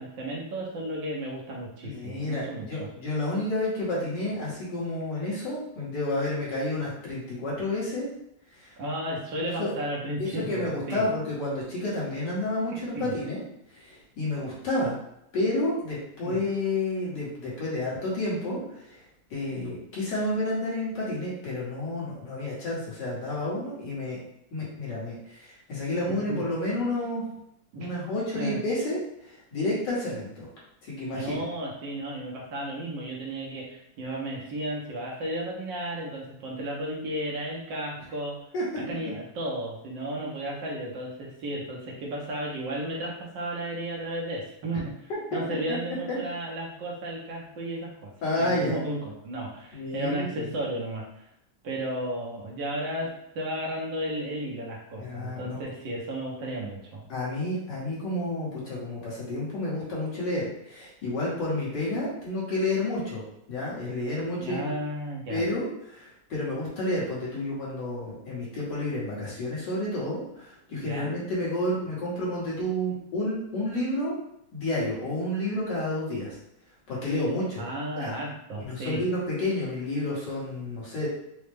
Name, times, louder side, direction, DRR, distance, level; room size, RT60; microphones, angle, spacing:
voice 1, 0.0-2.9 8.8-11.0 12.7-13.1 16.2-16.4 26.1-26.4 27.7-27.9 28.3-28.6 31.1-38.4 38.8-44.9 45.3-48.1 48.4-51.2 51.6-53.1 53.3-57.0 64.4-65.4 70.8-71.1 77.6-79.0, right 1 dB, 90° right, -2 dB, 1.6 m, -34 dB
voice 2, 1.8-8.1 8.5-8.8 9.4-9.7 10.2-13.4 13.7-15.0 15.3-19.0 19.3-24.2 24.5-27.2 27.8-30.5 30.8-31.4 38.5-38.6 45.7-45.8 48.2-48.8 49.7-50.5 55.0-55.6 57.1-63.2 63.5-64.6 65.3-74.1 74.5-76.4 76.9-77.7 78.0-78.1 78.6-81.1, left 1 dB, 70° left, -7 dB, 2.0 m, -30 dB
4.8 x 2.1 x 3.3 m, 0.80 s
omnidirectional pair, 1.9 m